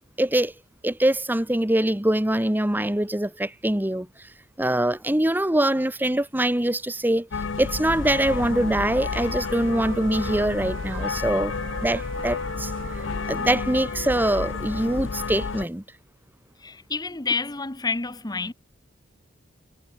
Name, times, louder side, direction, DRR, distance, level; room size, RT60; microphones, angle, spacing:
voice 1, 0.2-0.5 0.8-4.3 4.6-7.3 7.6-11.5 11.8-12.7 13.3-15.8, right 1 dB, 10° right, 1.1 m, -23 dB
sound 1, 7.3-15.6, left 4 dB, 80° left, 0.7 m, -31 dB
Wind instrument woodwind instrument, 7.6-11.2 11.5-15.7, right 3 dB, 65° right, 5.5 m, -42 dB
voice 2, 16.6-18.5, left 4 dB, 20° left, 1.1 m, -29 dB
head